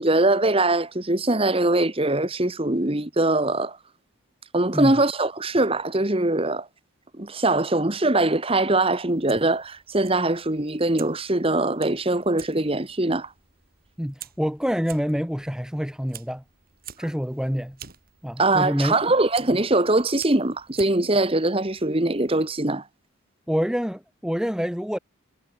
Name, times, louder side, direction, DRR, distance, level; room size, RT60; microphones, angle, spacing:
voice 1, 0.0-3.8 4.5-6.7 7.2-13.3 18.4-22.8, right 2 dB, 25° right, 1.4 m, -22 dB
Fire, 9.1-22.5, right 10 dB, 45° right, 5.9 m, -48 dB
voice 2, 14.0-16.4 17.0-17.8 18.2-19.0 23.5-25.0, equal, 5° right, 1.4 m, -26 dB
head